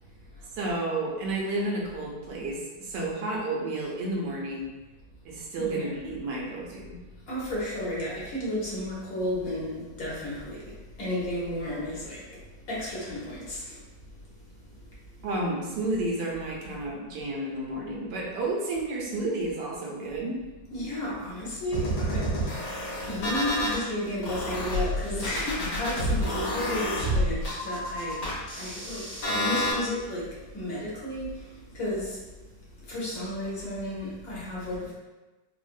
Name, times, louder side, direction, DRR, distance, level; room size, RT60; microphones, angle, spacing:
voice 1, 0.5-4.7 5.2-7.0 15.2-20.4, right 2 dB, 80° right, -3 dB, 1.3 m, -31 dB
voice 2, 5.6-5.9 7.3-12.2 12.7-13.8 20.7-32.2 32.8-34.9, left 1 dB, 60° left, -7 dB, 1.2 m, -33 dB
sound 1, 21.7-23.8 24.2-29.7, equal, 75° left, 1.6 m, -29 dB
3.7 x 2.0 x 2.5 m, 1.2 s
omnidirectional pair, 1.9 m